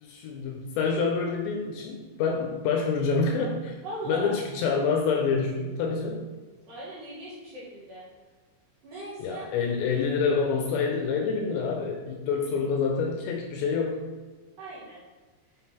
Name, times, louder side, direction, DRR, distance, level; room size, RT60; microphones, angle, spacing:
voice 1, 0.0-3.7 4.0-6.3 9.2-14.0, left 5 dB, 85° left, 1 dB, 2.7 m, -27 dB
voice 2, 3.8-4.3 6.7-8.0 8.8-9.5 14.6-15.0, right 1 dB, 55° right, -8 dB, 2.7 m, -38 dB
7.8 x 3.8 x 4.3 m, 1.3 s
omnidirectional pair, 5.5 m